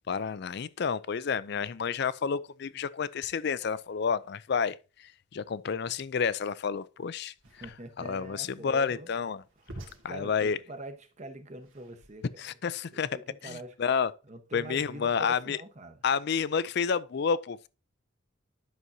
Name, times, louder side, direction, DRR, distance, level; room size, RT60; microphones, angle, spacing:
voice 1, 0.1-4.8 5.3-7.3 8.0-9.4 10.0-10.6 12.4-13.1 13.4-14.1 14.5-15.6 16.0-17.7, left 6 dB, 55° left, 0.4 m, -30 dB
sound 1, 7.3-12.5, right 1 dB, 80° right, 1.9 m, -50 dB
voice 2, 7.6-9.1 9.8-12.4 12.9-13.8 14.2-16.0, right 1 dB, 35° right, 1.0 m, -44 dB
11.0 x 6.1 x 2.7 m
head